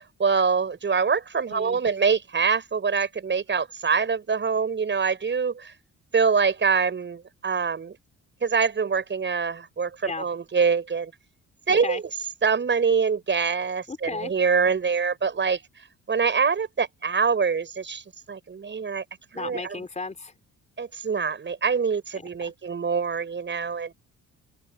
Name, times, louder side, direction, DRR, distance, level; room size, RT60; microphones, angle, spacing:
voice 1, 0.2-5.7 6.1-8.0 8.4-11.1 11.7-12.0 12.4-15.6 16.1-18.0 18.3-19.0 19.3-19.8 20.8-23.9, right 5 dB, 40° right, 6.2 m, -24 dB
voice 2, 1.5-1.8 10.0-10.3 11.8-12.0 13.9-14.3 19.3-20.3 22.1-22.5, left 3 dB, 25° left, 4.3 m, -35 dB
open air
cardioid pair, 90°, 30 cm